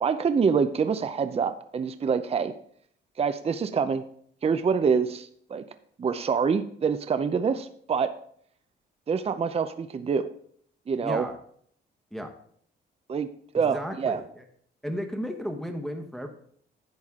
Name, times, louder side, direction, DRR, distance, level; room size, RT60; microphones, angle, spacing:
voice 1, 0.0-2.5 3.2-4.0 4.4-5.6 6.0-8.1 9.1-10.3 10.9-11.3 13.1-13.3 13.5-14.2, right 6 dB, 30° right, 10 dB, 0.6 m, -26 dB
voice 2, 11.0-11.4 12.1-12.3 13.6-14.4 14.8-16.3, equal, ahead, 3 dB, 1.1 m, -34 dB
10.5 x 7.5 x 3.7 m, 0.63 s
cardioid pair, 90°, 20 cm